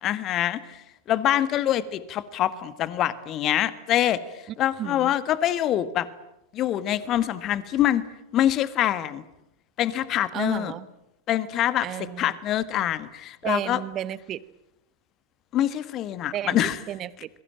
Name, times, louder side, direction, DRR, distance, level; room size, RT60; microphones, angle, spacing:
voice 1, 0.0-4.2 4.6-6.1 6.5-8.0 8.3-9.2 9.8-10.7 11.3-13.8 15.5-16.8, left 12 dB, 35° left, 15 dB, 1.5 m, -25 dB
voice 2, 4.8-5.1 10.3-10.9 11.8-12.4 13.4-14.4 16.3-17.4, right 11 dB, 30° right, 19 dB, 1.1 m, -33 dB
26.5 x 22.0 x 8.8 m, 0.87 s
figure-of-eight pair, 90°, 0 cm